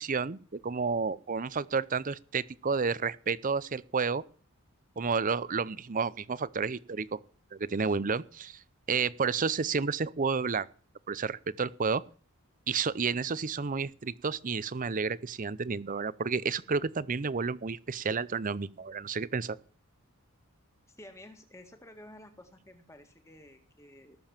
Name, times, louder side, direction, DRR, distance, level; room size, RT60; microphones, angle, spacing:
voice 1, 0.0-4.2 5.0-7.2 7.5-8.6 8.9-10.7 11.1-12.0 12.7-19.6, right 5 dB, 35° right, 0.6 m, -31 dB
voice 2, 20.9-24.2, left 1 dB, 15° left, 2.0 m, -52 dB
19.0 x 7.0 x 7.3 m
head